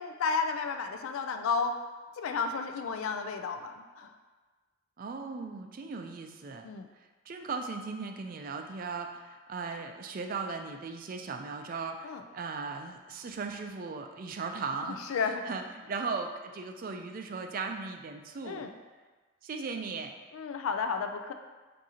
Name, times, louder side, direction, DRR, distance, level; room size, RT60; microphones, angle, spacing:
voice 1, 0.0-1.8 2.2-4.1 6.6-6.9 12.0-12.2 14.8-15.4 18.4-18.7 20.3-21.3, left 5 dB, 85° left, 7 dB, 0.4 m, -32 dB
voice 2, 5.0-6.7 7.3-15.2 15.5-18.7 19.4-20.1, right 4 dB, 45° right, 5 dB, 0.3 m, -37 dB
7.2 x 2.6 x 2.8 m, 1.3 s
head